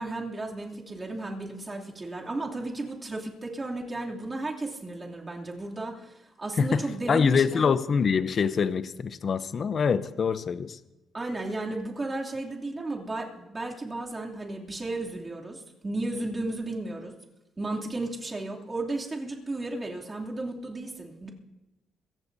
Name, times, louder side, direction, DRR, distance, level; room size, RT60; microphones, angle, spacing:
voice 1, 0.0-7.7 11.1-17.1 17.6-21.3, right 2 dB, 25° right, -2 dB, 2.7 m, -34 dB
voice 2, 7.1-10.8, left 6 dB, 50° left, 14 dB, 0.7 m, -25 dB
25.5 x 15.5 x 2.7 m, 1.0 s
cardioid pair, 90°, 0 cm